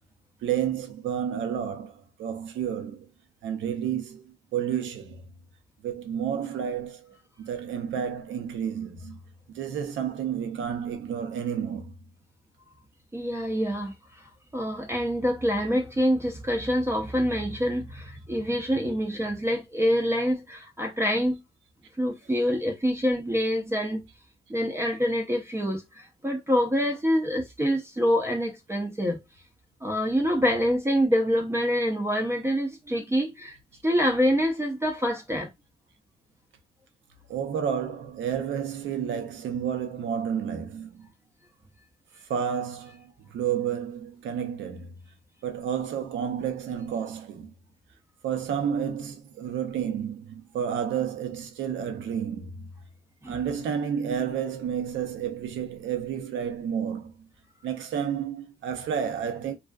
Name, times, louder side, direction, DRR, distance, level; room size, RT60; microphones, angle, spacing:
voice 1, 0.4-3.1 3.4-5.2 5.8-9.2 9.5-11.9 37.3-41.1 42.3-45.0 45.4-47.5 48.2-52.7 53.3-57.3 57.6-59.6, right 8 dB, 75° right, 0.6 m, -31 dB
voice 2, 13.1-14.2 14.5-21.4 22.0-24.1 24.5-29.2 29.8-33.6 33.8-35.5 53.2-53.4, equal, 15° right, 0.5 m, -26 dB
2.5 x 2.4 x 2.2 m
cardioid pair, 90°, 20 cm